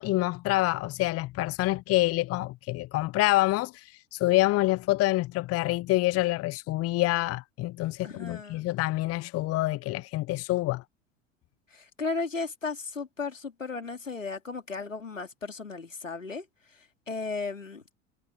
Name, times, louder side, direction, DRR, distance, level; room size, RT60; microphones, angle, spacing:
voice 1, 0.0-10.8, left 18 dB, 40° left, 0.8 m, -27 dB
voice 2, 8.0-8.7 11.7-16.5 16.7-17.9, left 4 dB, 90° left, 3.4 m, -35 dB
figure-of-eight pair, 70°, 37 cm